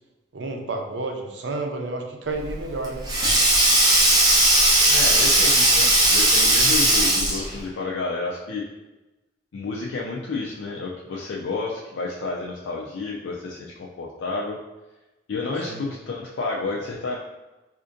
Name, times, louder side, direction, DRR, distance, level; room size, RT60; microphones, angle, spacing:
voice 1, 0.3-3.1 15.6-15.9, right 2 dB, 75° right, 3 dB, 0.5 m, -30 dB
Sink (filling or washing), 2.4-7.6, right 1 dB, 20° right, 0.6 m, -18 dB
voice 2, 4.9-8.6 9.5-14.6 15.3-17.2, left 3 dB, 80° left, -3 dB, 0.4 m, -30 dB
4.2 x 2.5 x 2.5 m, 1.1 s
head